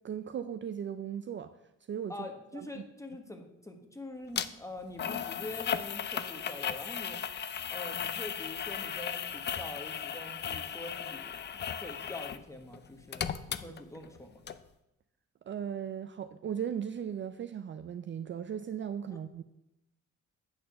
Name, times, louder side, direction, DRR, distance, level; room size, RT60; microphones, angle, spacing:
voice 1, 0.0-1.5 1.9-2.1 2.5-2.7 15.5-19.4, right 8 dB, 40° right, 9 dB, 0.4 m, -37 dB
voice 2, 2.1-7.2 7.7-14.4 19.1-19.2, left 2 dB, 10° left, 5 dB, 1.3 m, -45 dB
Content warning, 4.3-4.5 5.0-12.4 12.7-14.2 14.5-14.6, left 8 dB, 35° left, 0.5 m, -36 dB
8.5 x 4.3 x 6.7 m, 0.88 s
cardioid pair, 90°, 30 cm